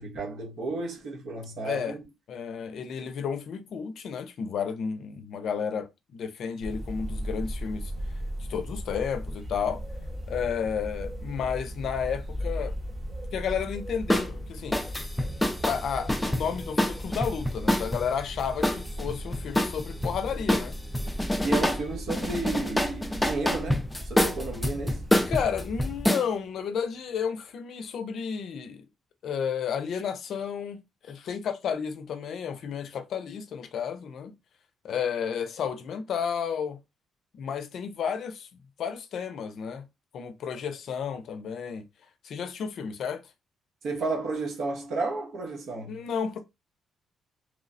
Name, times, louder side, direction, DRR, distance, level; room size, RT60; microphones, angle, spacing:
voice 1, 0.0-2.0 21.4-25.1 43.8-46.0, right 3 dB, 75° right, 0.9 m, -32 dB
voice 2, 1.6-2.0 2.3-7.9 8.5-9.8 10.3-12.7 13.3-14.8 15.6-20.8 21.4-21.7 25.3-28.8 29.2-34.3 34.8-36.8 37.3-38.5 38.8-39.8 40.1-41.9 42.2-43.2 45.9-46.4, left 7 dB, 65° left, 0.5 m, -32 dB
sound 1, 6.6-26.1, equal, 45° right, 1.0 m, -37 dB
sound 2, 14.1-14.3 14.7-18.0 18.6-20.1 20.5-21.8 22.1-26.2, left 1 dB, 10° left, 0.4 m, -26 dB
3.0 x 2.0 x 2.5 m
cardioid pair, 90°, 0 cm